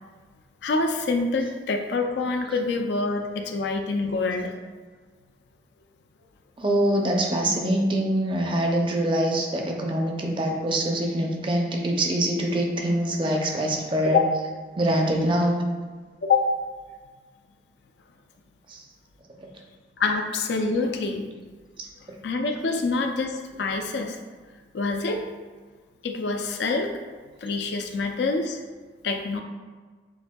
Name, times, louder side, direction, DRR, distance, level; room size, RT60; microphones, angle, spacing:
voice 1, 0.6-4.5 14.0-14.2 16.2-16.5 20.0-21.3 22.2-24.2 24.7-25.3 26.0-27.0 27.4-28.6 29.0-29.4, left 3 dB, 70° left, 4 dB, 0.4 m, -26 dB
voice 2, 6.6-14.2 14.8-15.6 18.7-18.8, right 1 dB, 25° right, 1 dB, 0.5 m, -24 dB
7.0 x 2.6 x 2.2 m, 1.4 s
head